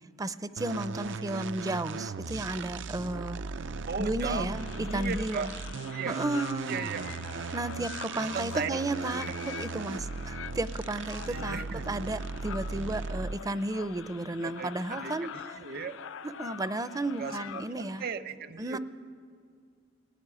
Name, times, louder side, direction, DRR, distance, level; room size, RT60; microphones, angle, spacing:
voice 1, 0.2-3.4 4.0-5.5 6.1-6.9 7.5-15.3 16.2-18.1 18.6-18.8, right 2 dB, 20° right, 14 dB, 0.5 m, -33 dB
sound 1, 0.6-13.5, right 4 dB, 65° right, 0.5 m, -37 dB
voice 2, 3.9-4.5 4.7-5.5 5.9-6.2 6.7-7.0 8.2-8.8 9.2-9.4 11.3-11.8 14.4-16.0 17.2-18.8, right 5 dB, 50° right, 11 dB, 0.9 m, -36 dB
sound 2, 4.5-18.1, left 8 dB, 70° left, 0.4 m, -45 dB
19.0 x 15.5 x 9.8 m, 2.1 s
head